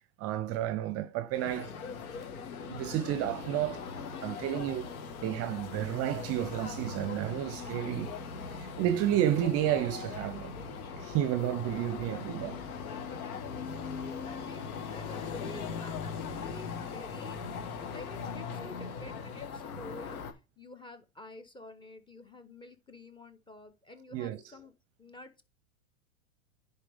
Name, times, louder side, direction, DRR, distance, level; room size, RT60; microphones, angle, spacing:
voice 1, 0.2-1.7 2.7-3.9 4.2-4.9 5.2-8.1 8.5-10.6 11.0-12.6 24.1-24.4, right 12 dB, 35° right, 0.6 m, -31 dB
sound 1, 1.3-20.3, left 5 dB, 80° left, 1.6 m, -40 dB
voice 2, 14.2-17.4 17.7-24.7 25.0-25.4, left 2 dB, 10° left, 0.9 m, -50 dB
10.0 x 4.4 x 3.5 m
hypercardioid pair, 125°, 43 cm